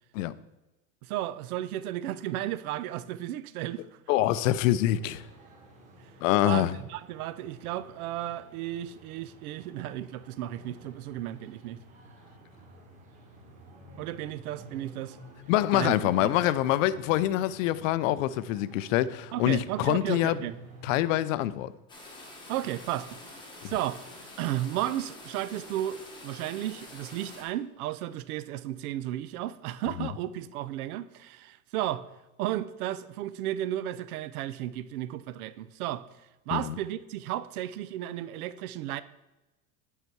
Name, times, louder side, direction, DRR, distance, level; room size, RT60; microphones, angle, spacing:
voice 1, 1.0-3.9 6.4-11.8 14.0-15.2 15.7-16.3 19.3-20.6 22.5-23.2 23.6-24.0 24.4-32.0 32.4-36.1 36.5-39.0, right 13 dB, 80° right, 0.6 m, -34 dB
voice 2, 4.1-5.2 6.2-6.7 15.5-20.4 20.8-21.7 30.0-30.1 36.5-36.7, left 14 dB, 65° left, 0.5 m, -25 dB
sound 1, 4.7-21.2, right 1 dB, 15° right, 1.3 m, -51 dB
sound 2, 21.9-27.4, left 1 dB, 10° left, 0.9 m, -47 dB
8.1 x 5.6 x 4.6 m
supercardioid pair, 165°, 43 cm